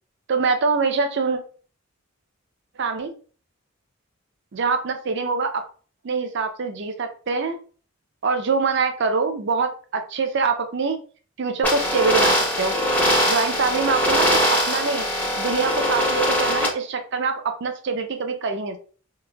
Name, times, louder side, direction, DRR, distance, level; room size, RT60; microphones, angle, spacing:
voice 1, 0.3-1.4 2.8-3.1 4.5-5.6 6.0-7.6 8.2-11.0 11.4-12.7 13.2-15.1 15.4-18.8, right 4 dB, 50° right, 7 dB, 0.5 m, -24 dB
sound 1, 11.6-16.7, equal, 5° left, 0.6 m, -21 dB
3.9 x 2.5 x 2.3 m, 0.40 s
head